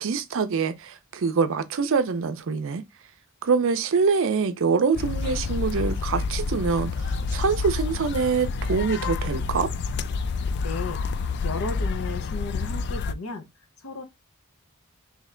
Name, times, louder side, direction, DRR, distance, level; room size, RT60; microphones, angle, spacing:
voice 1, 0.0-2.8 3.4-9.7, right 5 dB, 65° right, 0.5 m, -25 dB
sound 1, 4.9-13.1, left 4 dB, 55° left, 0.3 m, -28 dB
voice 2, 10.6-11.0 11.4-13.5 13.8-14.0, left 3 dB, 75° left, 0.7 m, -34 dB
3.2 x 2.8 x 3.7 m
head